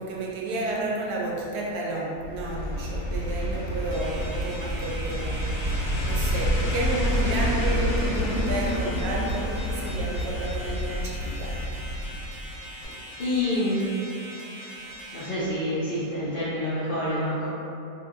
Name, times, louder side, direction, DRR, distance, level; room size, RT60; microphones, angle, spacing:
voice 1, 0.0-11.6, right 1 dB, 85° right, -3 dB, 1.1 m, -32 dB
sound 1, 2.2-12.6 12.8-12.9, equal, 55° left, 0.9 m, -28 dB
sound 2, 3.9-15.3, equal, 10° right, 0.3 m, -42 dB
voice 2, 13.2-13.9 14.6-14.7 15.1-17.5, left 1 dB, 75° left, -10 dB, 0.5 m, -27 dB
2.8 x 2.7 x 2.4 m, 2.6 s
omnidirectional pair, 1.7 m